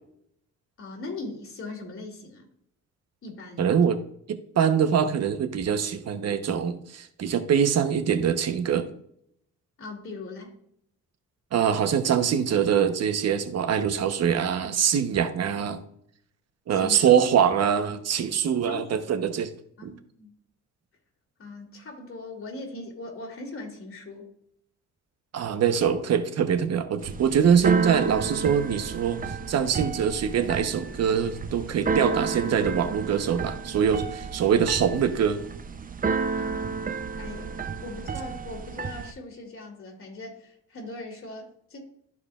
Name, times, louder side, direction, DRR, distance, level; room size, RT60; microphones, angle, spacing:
voice 1, 0.8-2.5 3.2-3.7 9.8-10.5 16.7-17.3 18.6-18.9 19.8-20.3 21.4-24.3 36.4-36.8 37.2-37.5 37.8-41.8, left 2 dB, 45° left, 1 dB, 2.7 m, -40 dB
voice 2, 3.6-4.0 4.3-8.9 11.5-15.8 16.7-19.5 19.8-19.9 25.3-29.2 29.5-35.4, right 8 dB, 55° right, 9 dB, 1.0 m, -23 dB
Keyboard (musical), 27.0-39.1, right 5 dB, 30° right, 0.6 m, -32 dB
13.0 x 4.8 x 2.4 m, 0.71 s
cardioid pair, 90°, 30 cm